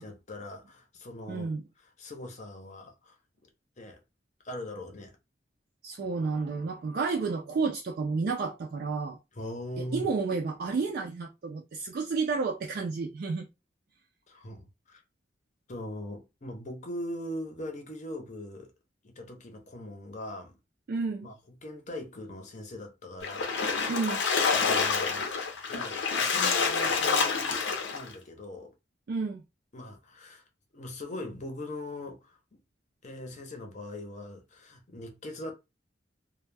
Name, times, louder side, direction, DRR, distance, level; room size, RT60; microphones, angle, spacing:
voice 1, 0.0-1.5 1.8-3.1 3.4-3.5 3.8-4.0 4.4-5.2 9.3-10.1 14.3-15.0 15.7-18.7 19.0-20.6 21.2-21.4 21.6-23.6 24.5-25.3 25.7-27.6 27.9-28.7 29.7-30.4 30.7-32.6 33.0-35.5, left 1 dB, 40° left, 0.6 m, -41 dB
voice 2, 1.3-1.6 5.8-9.2 9.8-13.4 20.9-21.3 23.9-24.2 29.1-29.4, right 4 dB, 55° right, 0.4 m, -31 dB
Splash splatter, 23.2-28.1, left 5 dB, 80° left, 0.6 m, -27 dB
2.1 x 2.1 x 3.3 m
head